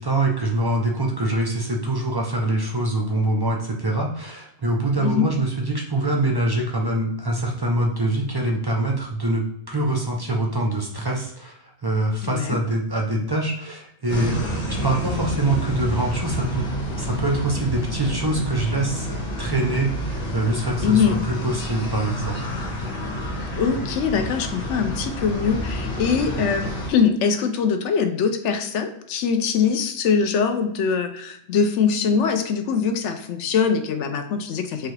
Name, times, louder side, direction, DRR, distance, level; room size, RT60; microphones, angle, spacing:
voice 1, 0.0-16.7 17.0-22.4 26.3-26.4, right 2 dB, 35° right, 0 dB, 0.3 m, -24 dB
voice 2, 5.0-5.3 12.2-12.6 20.8-21.2 23.5-34.9, left 6 dB, 65° left, 7 dB, 0.9 m, -22 dB
sound 1, 14.1-26.9, equal, 85° left, 1.7 m, -29 dB
5.9 x 2.4 x 3.2 m, 0.75 s
omnidirectional pair, 1.4 m